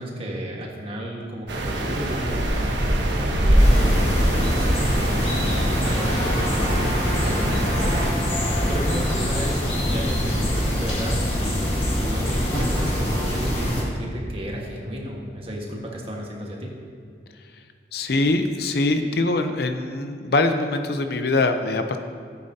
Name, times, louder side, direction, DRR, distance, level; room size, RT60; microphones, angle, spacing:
voice 1, 0.0-9.6 9.9-16.7, equal, 30° right, -1 dB, 1.5 m, -33 dB
sound 1, 1.5-8.1, right 1 dB, 80° right, 1.2 m, -23 dB
sound 2, 3.6-13.8, equal, 30° left, 2.0 m, -24 dB
voice 2, 17.9-22.0, left 2 dB, 60° left, 7 dB, 0.6 m, -23 dB
14.5 x 8.5 x 2.8 m, 2.3 s
head